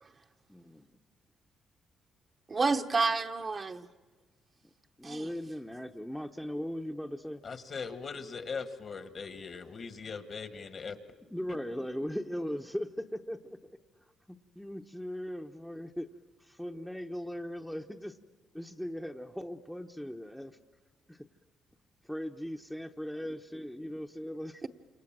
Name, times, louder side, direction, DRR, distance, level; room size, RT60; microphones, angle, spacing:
voice 1, 0.5-0.9 4.6-4.7 5.0-7.4 11.3-13.8 14.3-16.1 16.4-18.2 18.5-20.6 21.1-21.3 22.0-24.7, equal, 5° left, 0.9 m, -39 dB
voice 2, 2.5-3.9 5.0-5.3 24.6-24.7, right 4 dB, 35° right, 1.0 m, -30 dB
voice 3, 7.4-11.0, left 5 dB, 45° left, 1.6 m, -40 dB
29.0 x 27.5 x 7.5 m
cardioid pair, 90°, 0 cm